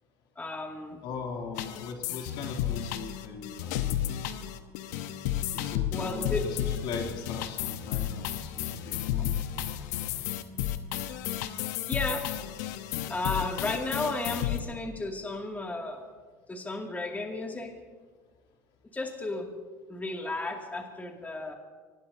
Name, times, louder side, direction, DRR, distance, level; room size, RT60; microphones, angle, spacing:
voice 1, 0.4-1.0 5.9-6.5 9.2-9.3 11.9-12.2 13.1-16.0 16.5-17.7 18.9-19.5 19.9-21.5, left 2 dB, 15° left, 1 dB, 2.5 m, -33 dB
voice 2, 1.0-4.1 5.5-9.4, left 5 dB, 60° left, 1 dB, 2.9 m, -39 dB
sound 1, 1.6-14.6, left 11 dB, 75° left, 1.0 m, -32 dB
24.5 x 18.5 x 2.8 m, 1.5 s
hypercardioid pair, 80°, 10 cm